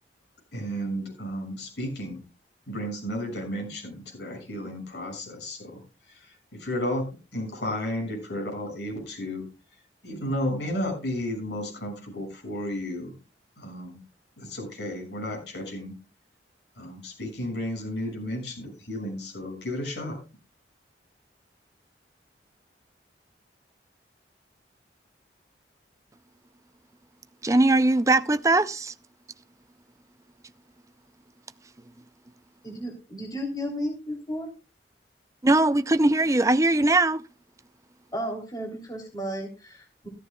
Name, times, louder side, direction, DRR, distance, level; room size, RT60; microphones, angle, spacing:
voice 1, 0.5-2.2 2.7-5.8 6.1-7.0 7.3-9.4 10.0-13.1 13.6-14.0 14.4-15.9 16.8-20.2, equal, 75° left, 6.5 m, -33 dB
voice 2, 27.4-28.9 35.4-37.2, right 2 dB, 20° right, 0.5 m, -20 dB
voice 3, 32.6-34.5 38.1-40.1, equal, 20° left, 3.2 m, -33 dB
14.5 x 14.0 x 2.3 m
head